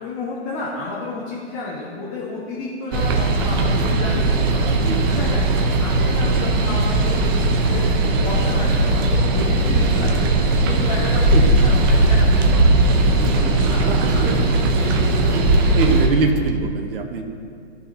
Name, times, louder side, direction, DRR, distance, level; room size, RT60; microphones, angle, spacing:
voice 1, 0.0-4.7 5.1-5.4 5.8-10.2 10.7-12.8 13.2-14.3 14.7-15.3, left 3 dB, 30° left, -6 dB, 1.4 m, -31 dB
sound 1, 2.9-16.1, right 2 dB, 20° right, 0.5 m, -18 dB
voice 2, 4.7-5.3 11.3-11.6 13.8-14.8 15.3-15.4 15.7-17.2, right 4 dB, 50° right, 4 dB, 1.0 m, -24 dB
15.5 x 5.5 x 2.8 m, 2.3 s
hypercardioid pair, 135°, 36 cm